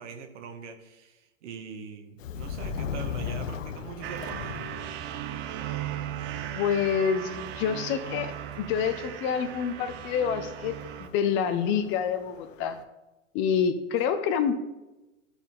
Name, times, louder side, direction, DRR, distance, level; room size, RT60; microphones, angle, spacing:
voice 1, 0.0-4.6, right 6 dB, 65° right, 6 dB, 1.4 m, -42 dB
Subway metro underground, 2.2-12.8, left 6 dB, 80° left, 0.7 m, -40 dB
sound 1, 4.0-11.1, right 12 dB, 30° right, 0.5 m, -37 dB
voice 2, 6.5-12.8 13.3-14.5, left 7 dB, 30° left, 11 dB, 0.6 m, -27 dB
13.0 x 4.3 x 3.6 m, 1.0 s
hypercardioid pair, 110°, 38 cm